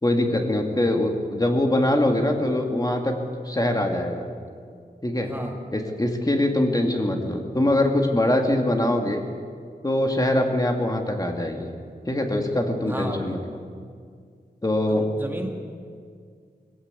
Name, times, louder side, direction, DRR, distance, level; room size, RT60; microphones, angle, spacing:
voice 1, 0.0-3.1 3.5-4.3 5.0-5.3 5.7-9.2 9.8-11.7 12.1-13.6 14.6-15.1, left 1 dB, 20° left, 2 dB, 1.9 m, -23 dB
voice 2, 5.2-5.6 12.8-13.3 14.9-15.5, right 1 dB, 10° right, 2 dB, 1.9 m, -33 dB
20.5 x 15.5 x 8.2 m, 2.1 s
wide cardioid pair, 110°, 17 cm